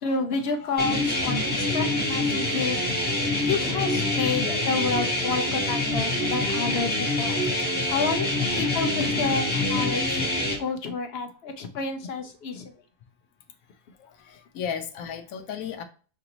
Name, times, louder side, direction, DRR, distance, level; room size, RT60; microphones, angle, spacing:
voice 1, 0.0-7.4 7.9-10.3 10.6-12.7, left 4 dB, 60° left, 6 dB, 0.7 m, -30 dB
sound 1, 0.8-10.6, left 2 dB, 5° left, 1.1 m, -26 dB
voice 2, 14.5-15.8, left 8 dB, 75° left, 7 dB, 1.1 m, -34 dB
5.8 x 2.6 x 2.9 m, 0.39 s
omnidirectional pair, 1.5 m